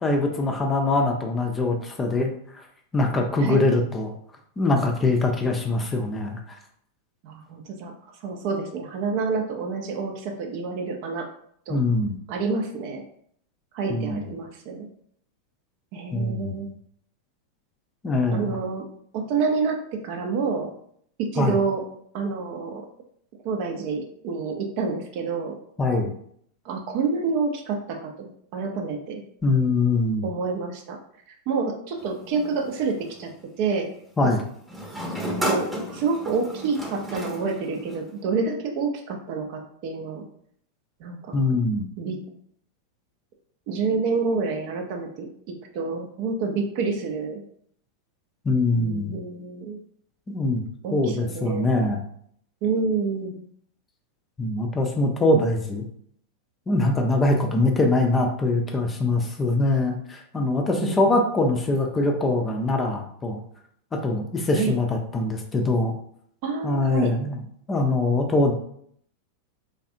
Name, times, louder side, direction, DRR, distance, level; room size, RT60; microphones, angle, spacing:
voice 1, 0.0-2.7 2.9-4.1 4.6-6.4 11.7-12.2 13.9-14.2 16.1-16.6 18.0-18.6 21.4-21.6 25.8-26.1 29.4-30.2 34.2-34.4 41.3-41.9 48.4-49.1 50.3-50.6 50.9-52.0 54.4-55.9 56.7-63.4 64.0-65.9 66.6-67.4 67.7-68.5, left 2 dB, 15° left, 3 dB, 0.5 m, -23 dB
voice 2, 7.2-11.3 11.7-11.8 12.3-13.0 13.7-14.9 15.9-16.7 18.3-18.8 19.1-20.7 21.2-21.8 22.1-22.9 23.4-25.6 26.6-29.2 30.2-31.0 31.5-33.3 33.6-33.9 35.4-40.2 41.0-41.4 42.0-42.2 43.7-47.4 48.8-49.8 50.8-51.7 52.6-53.4 60.8-61.2 64.6-64.8 66.4-67.1, right 4 dB, 45° right, 3 dB, 0.5 m, -28 dB
sound 1, 32.0-33.3 34.7-38.2, equal, 10° right, 0.9 m, -32 dB
3.4 x 2.4 x 2.6 m, 0.65 s
figure-of-eight pair, 90°, 0 cm